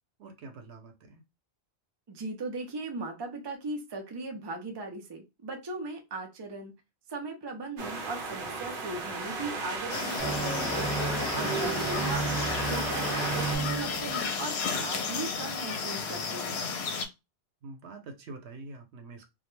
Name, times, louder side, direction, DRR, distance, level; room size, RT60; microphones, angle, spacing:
voice 1, 0.2-1.2 12.1-12.3 17.6-19.3, right 3 dB, 90° right, 5 dB, 0.9 m, -45 dB
voice 2, 2.1-6.7 7.1-10.9 11.3-16.6, right 2 dB, 35° right, 3 dB, 0.5 m, -38 dB
sound 1, 7.8-13.6, right 3 dB, 60° right, 0.8 m, -34 dB
sound 2, 9.9-17.0, left 5 dB, 80° left, 0.8 m, -33 dB
sound 3, 10.2-14.5, right 3 dB, 10° left, 0.7 m, -33 dB
2.3 x 2.1 x 3.0 m, 0.24 s
omnidirectional pair, 1.1 m